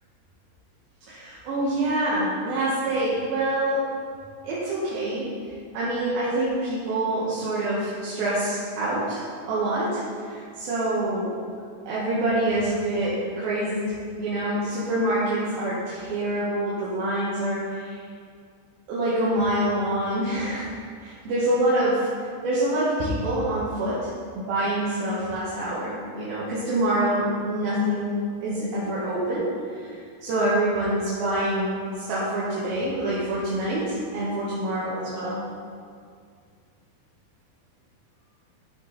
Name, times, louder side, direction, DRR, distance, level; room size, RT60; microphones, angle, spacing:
voice 1, 1.1-3.8 4.4-5.3 5.7-9.2 9.5-11.3 11.9-13.9 14.2-18.0 18.9-20.7 21.0-22.1 22.4-24.0 24.4-28.1 28.4-29.9 30.2-35.4, right 1 dB, 75° right, -9 dB, 3.3 m, -26 dB
13.0 x 6.1 x 4.1 m, 2.2 s
omnidirectional pair, 4.3 m